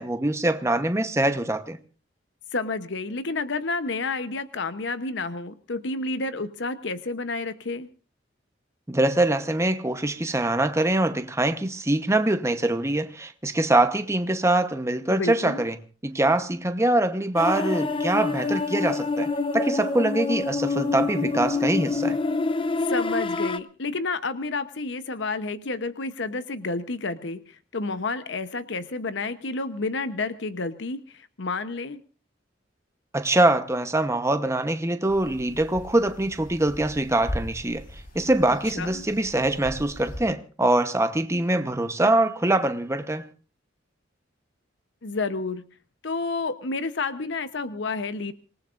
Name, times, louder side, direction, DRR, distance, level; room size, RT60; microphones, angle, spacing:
voice 1, 0.0-1.8 8.9-15.8 16.0-22.2 33.1-37.8 38.1-43.3, right 2 dB, 15° right, 1.0 m, -23 dB
voice 2, 2.5-7.9 15.1-15.6 22.9-32.0 38.7-39.1 45.0-45.6 46.0-48.3, left 3 dB, 70° left, 0.9 m, -30 dB
sound 1, 17.3-23.6, left 3 dB, 30° left, 0.7 m, -26 dB
sound 2, 35.1-40.2, equal, 50° left, 4.7 m, -39 dB
26.5 x 18.5 x 2.5 m
head